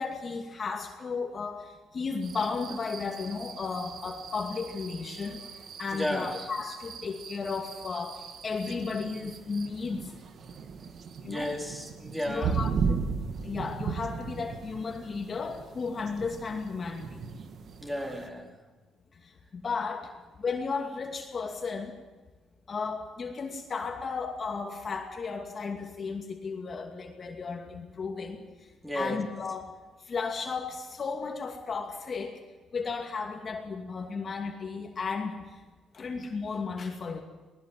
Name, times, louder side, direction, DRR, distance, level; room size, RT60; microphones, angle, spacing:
voice 1, 0.0-5.5 5.8-10.1 11.2-11.5 12.3-13.1 13.4-17.2 19.2-20.1 20.4-22.0 22.7-28.4 28.9-29.7 30.0-32.4 32.7-35.6 35.9-37.2, left 4 dB, 40° left, 3 dB, 2.5 m, -34 dB
sound 1, 2.2-18.3, right 6 dB, 55° right, 1.8 m, -37 dB
voice 2, 5.9-6.3 11.3-12.5 17.8-18.5 28.8-29.2, equal, 5° right, 1 dB, 4.2 m, -33 dB
20.5 x 19.5 x 7.7 m, 1.3 s
cardioid pair, 100°, 0 cm